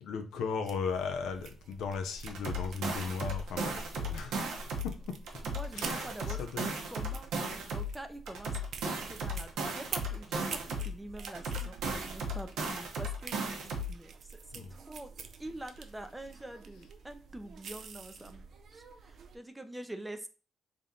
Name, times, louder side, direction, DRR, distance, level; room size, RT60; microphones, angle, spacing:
voice 1, 0.0-4.5 4.8-5.2 5.7-6.1 6.4-6.8 14.5-14.7, left 5 dB, 80° left, 6 dB, 0.5 m, -36 dB
sound 1, 0.7-19.4, right 5 dB, 60° right, 0.5 m, -47 dB
sound 2, 2.3-4.9 5.3-7.9 8.3-10.9 11.3-13.9, right 1 dB, 85° right, 0.9 m, -35 dB
voice 2, 5.4-7.4 7.7-15.1 15.4-18.4 18.7-20.3, right 1 dB, 10° right, 8 dB, 0.5 m, -46 dB
3.5 x 2.6 x 3.7 m, 0.35 s
cardioid pair, 90°, 0 cm